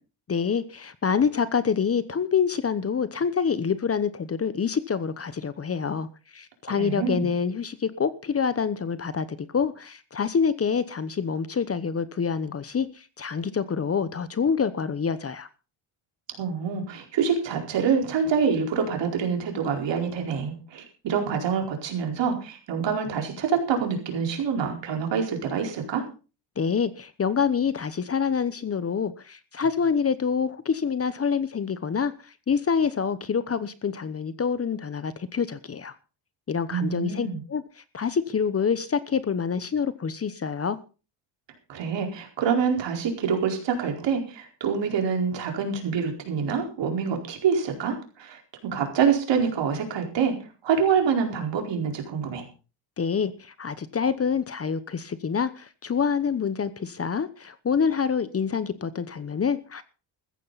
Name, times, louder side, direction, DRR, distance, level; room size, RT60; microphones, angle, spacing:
voice 1, 0.3-6.1 6.3-15.5 26.6-35.9 36.5-37.6 37.9-40.8 53.0-59.8, left 6 dB, 30° left, 1.0 m, -26 dB
voice 2, 6.7-7.3 16.4-26.1 36.7-37.4 41.7-50.4 50.6-52.4, right 6 dB, 65° right, 4.6 m, -26 dB
15.0 x 14.0 x 4.1 m
cardioid pair, 105°, 46 cm